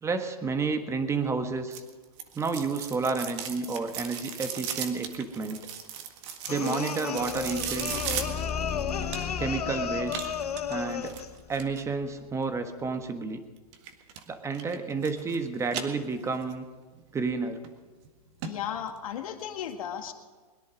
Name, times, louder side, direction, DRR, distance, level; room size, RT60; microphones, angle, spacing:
voice 1, 0.0-1.8 2.3-5.6 6.5-8.0 9.3-10.2 10.7-11.2 11.5-13.4 14.3-16.6 17.1-17.6, right 4 dB, 15° right, 7 dB, 1.4 m, -30 dB
sound 1, 1.7-9.5 10.1-11.8 13.7-14.2 14.5-15.4 15.7-16.5 16.9-17.0 17.6-17.7 18.0-18.1 18.4-18.5 18.9-19.0, right 8 dB, 50° right, 1.8 m, -37 dB
sound 2, 6.5-11.4, left 7 dB, 85° left, 0.9 m, -33 dB
sound 3, 7.2-12.1, left 6 dB, 30° left, 0.9 m, -38 dB
voice 2, 18.4-20.1, left 9 dB, 65° left, 5 dB, 1.9 m, -35 dB
22.0 x 10.5 x 5.2 m, 1.4 s
hypercardioid pair, 120°, 19 cm